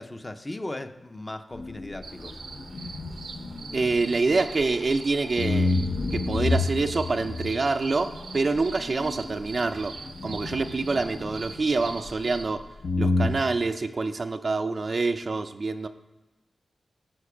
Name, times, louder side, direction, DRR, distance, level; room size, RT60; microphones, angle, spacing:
voice 1, 0.0-2.4, left 1 dB, 20° left, 7 dB, 0.6 m, -37 dB
sound 1, 1.5-5.0 5.4-12.6 12.8-13.3, left 2 dB, 65° left, 0.8 m, -30 dB
sound 2, 2.0-12.4, right 4 dB, 80° right, 0.8 m, -43 dB
voice 2, 3.7-5.8 6.1-10.0 10.2-12.7 13.0-15.9, right 3 dB, 45° right, 8 dB, 0.4 m, -26 dB
11.5 x 5.2 x 4.9 m, 1.1 s
wide cardioid pair, 125°, 0 cm